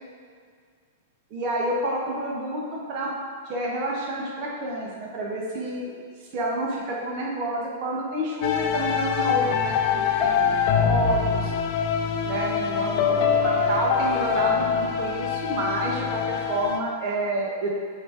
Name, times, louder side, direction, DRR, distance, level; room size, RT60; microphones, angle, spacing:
voice 1, 1.3-3.1 3.5-5.9 6.3-11.5 12.3-17.7, right 1 dB, 40° right, -3 dB, 1.0 m, -29 dB
sound 1, 8.4-16.8, left 7 dB, 45° left, 0.5 m, -24 dB
7.4 x 2.8 x 4.7 m, 2.1 s
figure-of-eight pair, 100°, 0 cm